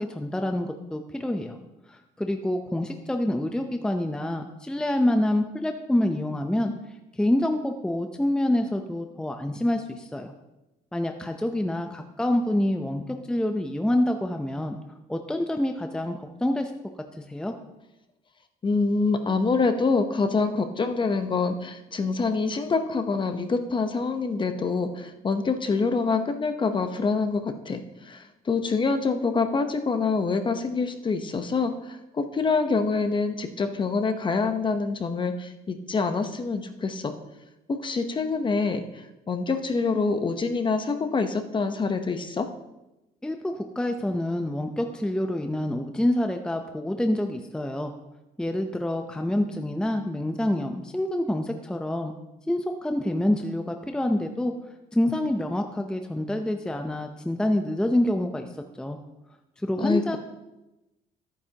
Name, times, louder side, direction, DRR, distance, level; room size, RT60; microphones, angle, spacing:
voice 1, 0.0-1.6 1.9-6.7 7.2-10.3 10.9-14.8 15.1-16.7 17.2-17.5 43.2-47.9 48.4-52.1 52.5-54.5 54.9-58.5 58.8-59.0 59.6-60.2, left 1 dB, 5° left, 5 dB, 0.7 m, -27 dB
voice 2, 18.6-37.1 37.7-38.8 39.3-42.5 59.8-60.2, left 4 dB, 30° left, 7 dB, 0.9 m, -26 dB
13.5 x 9.0 x 2.9 m, 0.96 s
cardioid pair, 110°, 17 cm